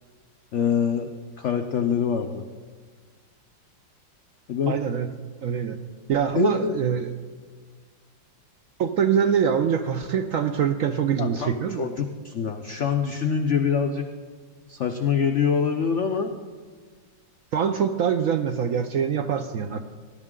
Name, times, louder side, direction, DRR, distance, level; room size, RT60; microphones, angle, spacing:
voice 1, 0.5-1.1 1.4-2.4 4.5-4.8 6.3-6.8 11.2-14.1 14.7-16.3, left 7 dB, 90° left, 6 dB, 0.6 m, -25 dB
voice 2, 4.7-5.1 5.4-5.8 6.1-7.1 8.8-11.9 17.5-19.8, right 7 dB, 80° right, 7 dB, 0.7 m, -24 dB
19.5 x 11.5 x 3.7 m, 1.5 s
omnidirectional pair, 2.1 m